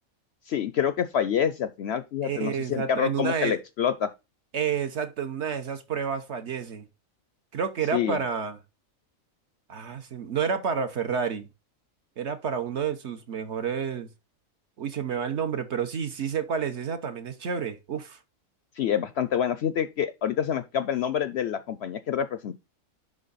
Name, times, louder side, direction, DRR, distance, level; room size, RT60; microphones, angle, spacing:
voice 1, 0.5-4.1 7.9-8.2 18.8-22.6, left 9 dB, 65° left, 0.7 m, -27 dB
voice 2, 2.2-3.6 4.5-6.9 7.5-8.6 9.7-11.5 12.2-14.1 14.8-18.2, right 7 dB, 55° right, 1.1 m, -30 dB
10.5 x 3.6 x 4.0 m
omnidirectional pair, 1.4 m